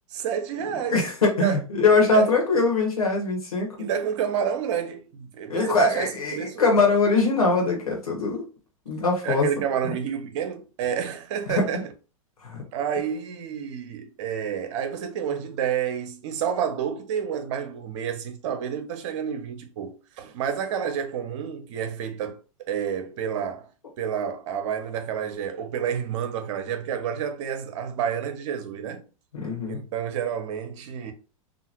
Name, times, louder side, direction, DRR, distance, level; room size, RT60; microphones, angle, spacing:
voice 1, 0.1-1.0 1.4-1.6 2.1-2.3 3.8-6.6 9.2-11.9 12.7-22.4 22.7-23.7 24.0-29.0 29.7-31.1, right 8 dB, 55° right, 0.7 m, -29 dB
voice 2, 0.9-3.9 5.5-8.4 8.8-9.5 9.8-9.9 11.5-11.8 12.4-12.6 29.3-29.8, left 3 dB, 85° left, 1.4 m, -22 dB
2.7 x 2.5 x 3.0 m
hypercardioid pair, 100°, 18 cm